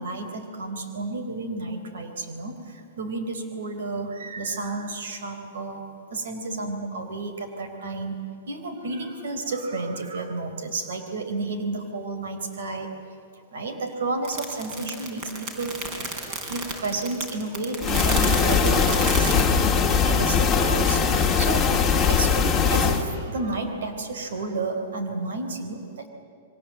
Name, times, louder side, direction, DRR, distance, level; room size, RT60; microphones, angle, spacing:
voice 1, 0.0-5.8 6.1-8.2 8.5-12.9 13.5-15.8 16.2-21.7 22.1-22.4 22.7-26.1, right 3 dB, 80° right, 6 dB, 4.1 m, -31 dB
sound 1, 14.2-19.4, right 3 dB, 25° right, 4.0 m, -32 dB
sound 2, 17.8-23.0, left 6 dB, 10° left, 1.9 m, -21 dB
28.5 x 23.5 x 7.8 m, 2.5 s
supercardioid pair, 175°, 0 cm